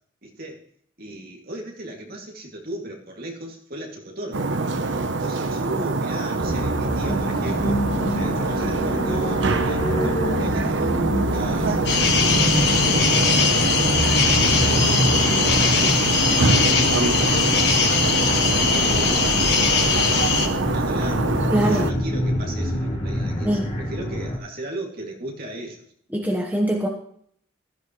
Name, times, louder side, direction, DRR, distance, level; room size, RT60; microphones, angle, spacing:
voice 1, 0.2-0.6 1.0-4.5 5.2-13.7 14.3-25.9, right 1 dB, 45° right, 0 dB, 2.4 m, -36 dB
sound 1, 4.3-21.9, right 3 dB, 60° right, 0.8 m, -25 dB
sound 2, 6.4-24.4, equal, 30° left, 3.5 m, -27 dB
sound 3, 11.9-20.5, left 5 dB, 55° left, 1.5 m, -21 dB
voice 2, 21.5-21.9 23.4-23.7 26.1-26.9, right 1 dB, 10° right, 0 dB, 1.1 m, -23 dB
15.5 x 13.0 x 3.1 m, 0.64 s
head